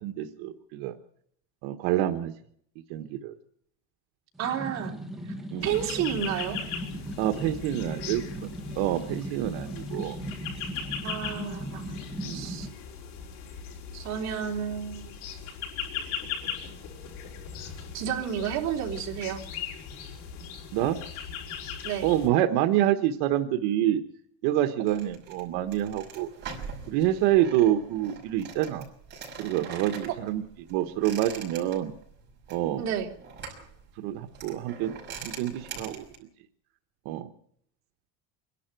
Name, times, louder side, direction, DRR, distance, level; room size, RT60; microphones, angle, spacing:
voice 1, 0.0-1.0 1.6-2.3 2.9-3.3 5.5-5.8 7.2-8.2 8.8-10.2 12.2-12.5 20.7-21.0 22.0-24.0 24.4-26.3 26.9-28.9 29.4-30.4 30.7-31.9 32.5-32.8 34.0-35.0 35.2-36.0 37.0-37.3, right 12 dB, 75° right, 5 dB, 1.3 m, -27 dB
sound 1, 4.3-12.7, equal, ahead, 1.4 m, -38 dB
voice 2, 4.4-4.9 5.6-6.6 11.0-12.0 12.3-12.7 13.9-15.1 17.9-19.4 21.8-22.1 30.1-30.2 32.8-33.1, right 9 dB, 45° right, 0 dB, 3.4 m, -31 dB
sound 2, 5.6-22.3, left 7 dB, 90° left, 6.0 m, -39 dB
sound 3, 24.9-36.2, right 5 dB, 25° right, 5.7 m, -43 dB
26.0 x 11.5 x 9.1 m, 0.69 s
cardioid pair, 165°, 38 cm